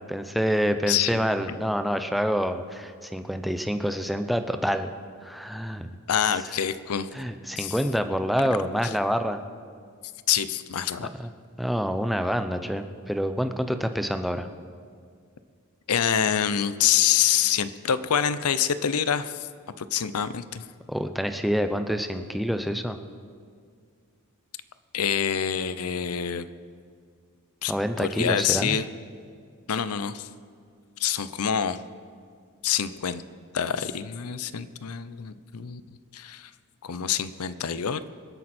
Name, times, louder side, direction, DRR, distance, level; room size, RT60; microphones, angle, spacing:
voice 1, 0.1-4.9 5.2-5.9 7.1-9.4 11.0-11.3 11.6-14.5 20.9-23.0 27.7-28.8, equal, ahead, 8 dB, 0.6 m, -27 dB
voice 2, 6.1-7.1 7.6-7.7 8.8-8.9 10.3-11.1 15.9-19.3 19.8-20.6 24.9-26.5 27.6-27.7 28.0-28.9 29.7-30.3 31.0-31.8 32.6-33.2 33.5-35.8 36.1-36.5 36.8-38.1, left 8 dB, 85° left, 14 dB, 0.6 m, -26 dB
25.5 x 8.8 x 4.3 m, 2.1 s
head